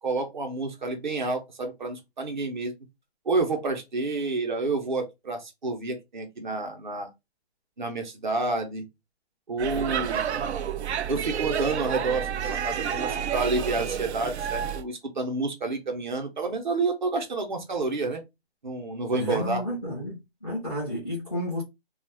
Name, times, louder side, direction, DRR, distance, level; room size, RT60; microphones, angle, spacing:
voice 1, 0.0-2.7 3.2-7.1 7.8-8.8 9.5-10.2 11.1-18.2 18.6-19.6, right 3 dB, 45° right, 0.8 m, -29 dB
Speech / Shout / Subway metro underground, 9.6-14.8, right 8 dB, 90° right, 0.5 m, -30 dB
voice 2, 19.1-21.6, left 1 dB, ahead, 0.6 m, -31 dB
2.3 x 2.3 x 3.3 m
hypercardioid pair, 170°, 32 cm